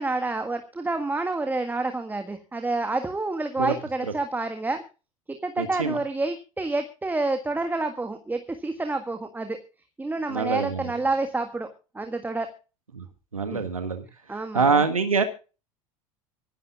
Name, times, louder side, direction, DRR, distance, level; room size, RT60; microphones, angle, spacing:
voice 1, 0.0-4.8 5.3-9.6 10.0-12.5 13.5-13.6 14.3-14.9, right 2 dB, 10° right, 7 dB, 1.7 m, -28 dB
voice 2, 5.6-6.0 10.3-10.8 12.9-13.0 13.3-14.0 14.5-15.2, right 4 dB, 80° right, 8 dB, 1.5 m, -24 dB
24.5 x 11.0 x 2.4 m, 0.33 s
figure-of-eight pair, 70°, 17 cm